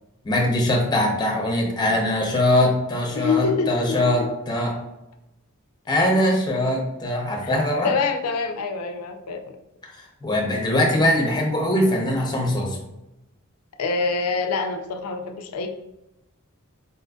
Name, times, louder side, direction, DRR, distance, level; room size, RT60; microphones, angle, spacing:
voice 1, 0.2-4.8 5.9-7.9 9.9-12.8, left 1 dB, 20° left, 0 dB, 0.6 m, -22 dB
voice 2, 3.1-4.3 7.4-7.5 7.8-9.6 13.8-15.7, left 4 dB, 80° left, 6 dB, 0.4 m, -26 dB
4.2 x 2.5 x 2.2 m, 0.92 s
head